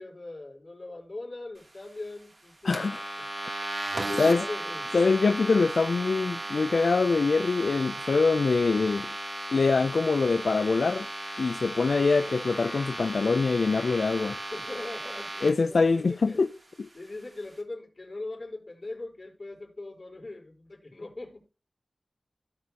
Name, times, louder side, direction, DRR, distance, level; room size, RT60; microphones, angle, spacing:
voice 1, 0.0-2.9 4.0-4.8 14.5-16.4 16.9-21.5, left 2 dB, 55° left, 4.1 m, -40 dB
voice 2, 2.6-3.1 4.2-4.4 4.9-9.1 9.5-11.1 11.4-14.4 15.4-16.5 16.8-16.9, left 4 dB, 85° left, 0.4 m, -24 dB
sound 1, 2.7-15.5, right 2 dB, 55° right, 2.8 m, -36 dB
16.0 x 6.2 x 2.9 m
wide cardioid pair, 55°, 0 cm